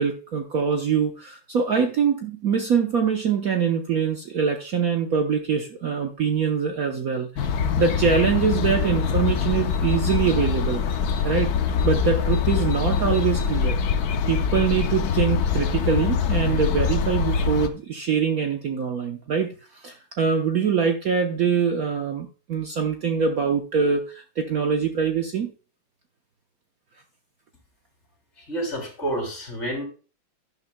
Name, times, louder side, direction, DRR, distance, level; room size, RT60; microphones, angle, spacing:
voice 1, 0.0-7.5 7.8-10.8 11.2-11.5 11.8-13.8 14.3-25.5, right 6 dB, 55° right, 4 dB, 1.1 m, -24 dB
sound 1, 7.3-17.7, left 6 dB, 60° left, 1.1 m, -24 dB
voice 2, 28.4-29.8, right 1 dB, 35° left, 1 dB, 3.3 m, -29 dB
12.0 x 10.5 x 2.2 m, 0.36 s
omnidirectional pair, 2.1 m